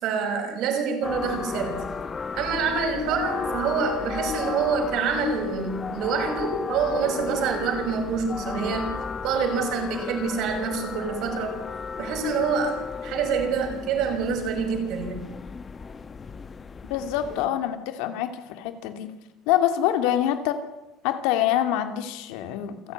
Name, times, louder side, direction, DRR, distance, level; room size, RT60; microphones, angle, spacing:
voice 1, 0.0-1.9 2.3-11.6 12.0-15.3, right 5 dB, 45° right, 4 dB, 6.1 m, -26 dB
sound 1, 1.0-17.5, left 5 dB, 15° left, 1.0 m, -34 dB
voice 2, 16.9-19.2 19.5-20.6 21.0-22.9, left 11 dB, 70° left, 9 dB, 2.7 m, -25 dB
28.0 x 15.0 x 9.6 m, 1.0 s
cardioid pair, 175°, 0 cm